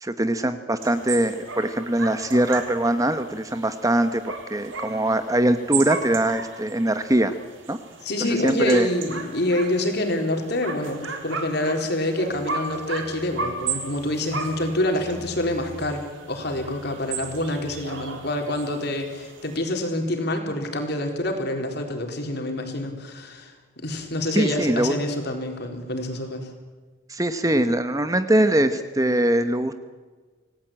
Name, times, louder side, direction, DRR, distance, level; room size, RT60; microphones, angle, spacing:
voice 1, 0.0-7.3 7.7-7.8 8.4-8.9 24.3-25.0 27.1-29.7, right 1 dB, 15° right, 10 dB, 0.9 m, -22 dB
sound 1, 0.8-19.6, right 5 dB, 65° right, 3.6 m, -35 dB
voice 2, 8.0-26.5, left 1 dB, 50° left, 4 dB, 4.2 m, -27 dB
sound 2, 12.3-18.2, right 1 dB, 35° right, 6.5 m, -47 dB
27.0 x 18.0 x 8.9 m, 1.4 s
head